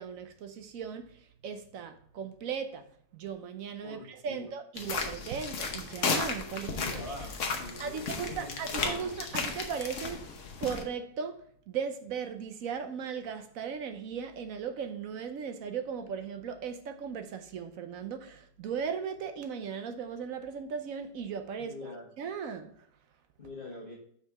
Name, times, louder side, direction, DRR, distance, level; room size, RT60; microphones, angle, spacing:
voice 1, 0.0-2.9 3.1-7.2 7.8-10.2 10.6-22.9, right 6 dB, 65° right, 0.9 m, -37 dB
voice 2, 3.8-4.4 6.7-9.0 21.6-22.0 23.4-23.9, left 2 dB, 30° left, 1.6 m, -44 dB
sound 1, 4.8-10.8, left 4 dB, 50° left, 1.1 m, -34 dB
sound 2, 6.3-9.4, left 5 dB, 85° left, 1.8 m, -45 dB
5.7 x 4.9 x 4.7 m
omnidirectional pair, 1.9 m